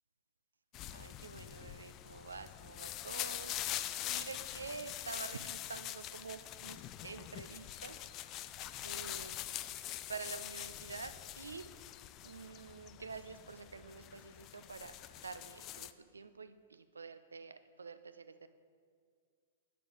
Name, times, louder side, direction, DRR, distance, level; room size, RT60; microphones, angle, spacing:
sound 1, 0.7-15.9, left 13 dB, 35° left, 0.3 m, -44 dB
voice 1, 0.9-3.8 4.0-8.1 8.8-9.4 9.6-9.8 10.1-11.7 12.2-18.5, right 4 dB, 90° right, 12 dB, 0.4 m, -48 dB
8.7 x 6.8 x 5.0 m, 2.1 s
hypercardioid pair, 110°, 0 cm